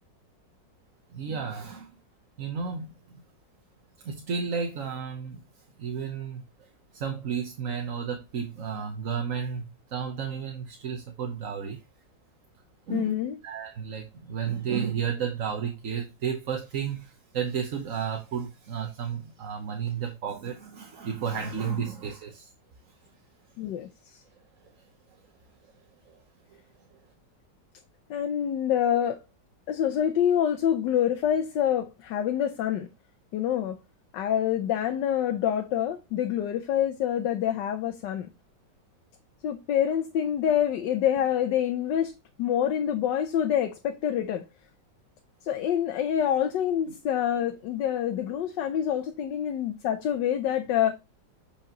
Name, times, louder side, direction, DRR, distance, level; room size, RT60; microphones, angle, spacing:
voice 1, 1.1-2.0 2.4-2.9 4.0-5.4 5.8-11.8 12.9-22.5 22.9-23.1 24.6-24.8 26.1-26.2 26.5-26.6 26.9-27.0 46.9-47.0, right 7 dB, 50° right, 1.2 m, -33 dB
voice 2, 12.9-13.4 21.6-21.9 23.6-24.2 28.1-29.2 29.7-32.9 33.3-33.8 34.1-38.3 39.4-42.1 42.4-44.4 45.4-50.9, left 10 dB, 80° left, 1.4 m, -26 dB
8.2 x 5.1 x 2.9 m
omnidirectional pair, 1.9 m